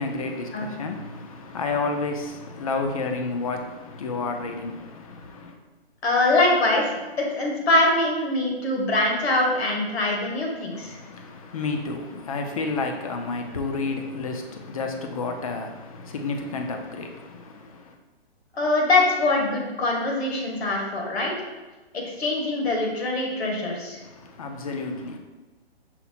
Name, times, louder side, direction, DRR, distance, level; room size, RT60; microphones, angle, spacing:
voice 1, 0.0-5.6 10.7-18.0 24.0-25.2, left 3 dB, 35° left, 0.5 m, -31 dB
voice 2, 6.0-11.0 18.5-21.4 21.9-24.0, left 2 dB, 75° left, 1.5 m, -23 dB
5.7 x 2.0 x 4.1 m
hypercardioid pair, 155°, 32 cm